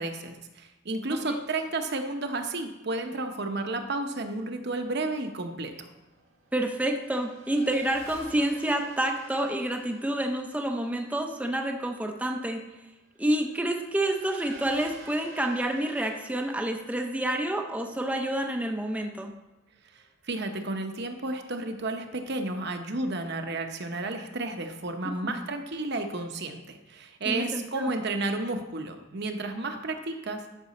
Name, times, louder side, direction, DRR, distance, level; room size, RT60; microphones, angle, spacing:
voice 1, 0.0-5.9 19.9-30.5, right 2 dB, 55° right, 5 dB, 0.9 m, -32 dB
Race car auto racing / Accelerating revving vroom, 5.2-19.3, right 2 dB, 85° right, 1.6 m, -50 dB
voice 2, 6.5-12.6 13.2-19.3 25.2-25.3 27.3-27.9, right 1 dB, 5° right, 2 dB, 0.6 m, -28 dB
12.0 x 6.1 x 4.2 m, 1.0 s
head